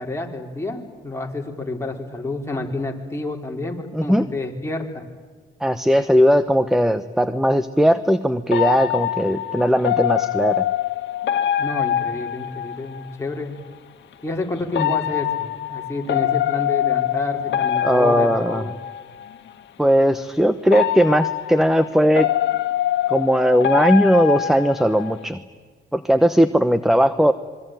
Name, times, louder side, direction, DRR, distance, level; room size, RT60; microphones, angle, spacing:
voice 1, 0.0-5.0 11.6-13.5 14.2-18.7, left 2 dB, 15° left, 1 dB, 4.3 m, -29 dB
voice 2, 3.9-4.3 5.6-10.6 14.8-14.9 17.8-18.6 19.8-22.3 23.1-25.4 25.9-27.3, equal, ahead, 13 dB, 1.0 m, -18 dB
sound 1, 8.5-13.1 14.7-19.3 20.7-25.3, left 11 dB, 65° left, 1.7 m, -24 dB
26.0 x 22.5 x 9.3 m, 1.5 s
cardioid pair, 90°, 20 cm